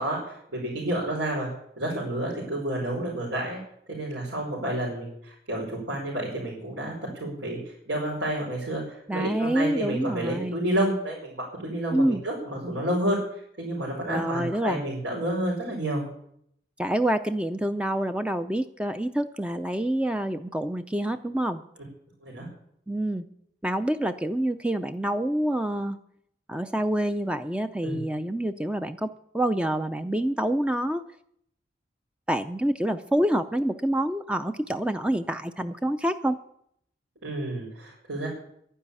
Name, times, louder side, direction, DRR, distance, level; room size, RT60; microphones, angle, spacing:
voice 1, 0.0-1.5 1.8-3.6 3.9-7.6 7.9-13.2 13.6-16.0 22.2-22.5 27.8-28.0 37.2-38.3, right 1 dB, 85° right, -5 dB, 5.0 m, -30 dB
voice 2, 9.1-10.6 11.9-12.2 14.1-14.8 16.8-21.6 22.9-23.2 23.6-26.0 26.5-31.0 32.3-36.4, right 1 dB, 5° right, 9 dB, 0.4 m, -27 dB
11.5 x 10.0 x 8.4 m, 0.71 s
head